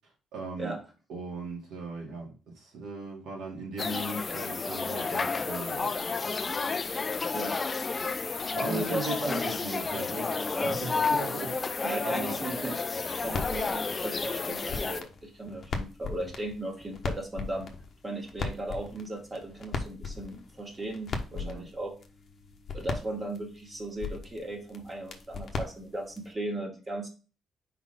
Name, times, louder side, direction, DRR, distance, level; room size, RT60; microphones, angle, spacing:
voice 1, 0.3-0.7 1.1-5.9 8.1-8.3 8.5-11.6 12.0-12.4 13.2-13.5 21.3-21.7, right 2 dB, 80° right, 2.3 m, -38 dB
sound 1, 3.8-15.0, left 4 dB, 35° left, 0.5 m, -31 dB
voice 2, 7.3-7.6 8.6-9.4 10.5-10.8 11.8-12.8 13.2-17.7 18.0-22.0 22.7-27.1, right 1 dB, 30° right, 1.9 m, -36 dB
sound 2, 12.9-26.3, left 4 dB, 50° left, 1.0 m, -39 dB
4.6 x 3.9 x 5.6 m
cardioid pair, 90°, 0 cm